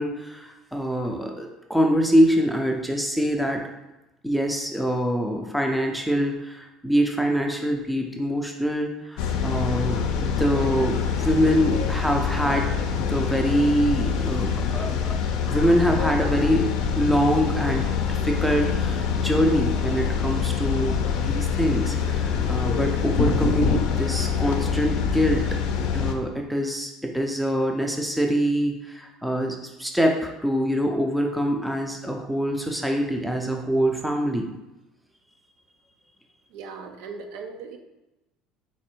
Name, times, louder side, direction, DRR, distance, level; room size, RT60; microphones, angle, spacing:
voice 1, 0.0-3.6 4.2-12.7 12.9-15.1 15.5-25.4 25.9-34.5, equal, ahead, 2 dB, 0.5 m, -24 dB
sound 1, 9.2-26.1, left 6 dB, 75° left, 0.5 m, -25 dB
voice 2, 36.5-37.8, right 4 dB, 75° right, 5 dB, 0.5 m, -38 dB
4.2 x 2.5 x 4.4 m, 0.99 s
cardioid pair, 145°, 0 cm